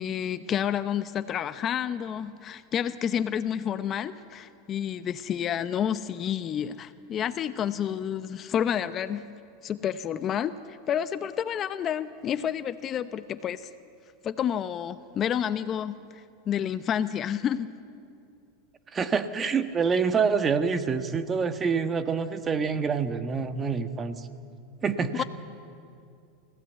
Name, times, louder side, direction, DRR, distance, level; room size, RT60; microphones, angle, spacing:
voice 1, 0.0-9.3 9.6-13.7 14.2-17.8 25.1-25.2, left 9 dB, 35° left, 12 dB, 0.8 m, -30 dB
voice 2, 18.9-24.3 24.8-25.2, right 5 dB, 25° right, 9 dB, 1.4 m, -26 dB
28.0 x 16.5 x 8.2 m, 2.4 s
hypercardioid pair, 110°, 0 cm